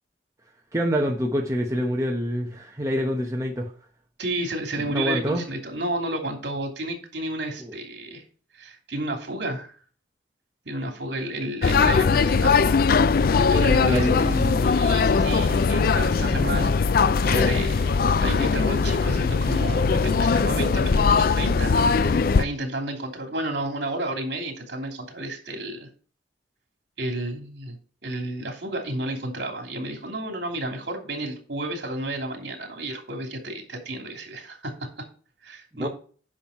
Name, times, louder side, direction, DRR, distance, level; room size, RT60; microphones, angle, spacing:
voice 1, 0.7-3.7 4.8-5.4 7.6-7.7 13.5-14.6 35.8-35.9, equal, 15° right, 1.1 m, -26 dB
voice 2, 4.2-8.2 8.5-9.7 10.6-12.8 13.5-25.9 27.0-27.8 28.0-34.9 35.4-35.9, right 1 dB, 65° right, 3.1 m, -32 dB
sound 1, 11.6-22.4, left 5 dB, 50° left, 0.4 m, -20 dB
9.9 x 6.2 x 4.4 m
head